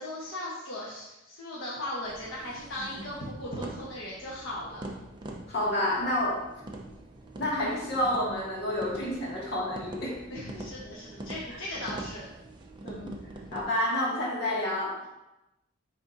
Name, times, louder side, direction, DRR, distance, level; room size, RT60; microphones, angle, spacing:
voice 1, 0.0-4.9 10.3-12.3, left 1 dB, 85° left, -5 dB, 1.1 m, -37 dB
sound 1, 2.1-13.6, right 1 dB, 25° right, 0.7 m, -44 dB
voice 2, 5.5-6.4 7.4-10.2 12.8-13.2 13.5-15.0, left 1 dB, 55° left, -6 dB, 2.1 m, -29 dB
9.8 x 3.6 x 2.7 m, 0.94 s
head